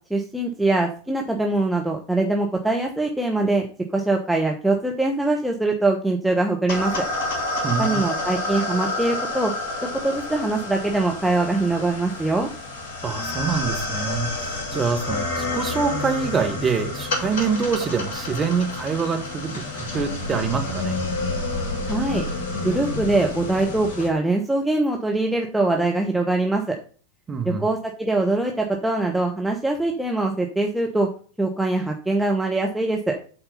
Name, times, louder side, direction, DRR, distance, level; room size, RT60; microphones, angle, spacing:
voice 1, 0.1-7.0 7.8-9.5 9.8-12.5 21.9-22.2 22.6-26.8 27.4-31.1 31.4-33.2, right 2 dB, 5° right, 0 dB, 1.0 m, -23 dB
sound 1, 6.7-24.1, left 2 dB, 50° left, 2.7 m, -29 dB
voice 2, 7.6-8.1 13.0-21.0 27.3-27.7, right 5 dB, 20° right, 4 dB, 1.7 m, -25 dB
7.8 x 4.3 x 6.9 m, 0.41 s
figure-of-eight pair, 90°, 0 cm